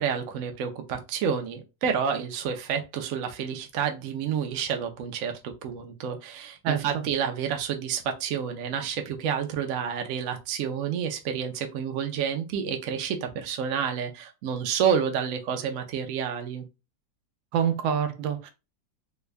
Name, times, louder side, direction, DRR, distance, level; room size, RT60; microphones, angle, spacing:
voice 1, 0.0-16.7, right 7 dB, 65° right, 0.8 m, -29 dB
voice 2, 6.6-7.0 17.5-18.5, right 8 dB, 90° right, 1.3 m, -26 dB
3.4 x 2.2 x 3.3 m
omnidirectional pair, 2.0 m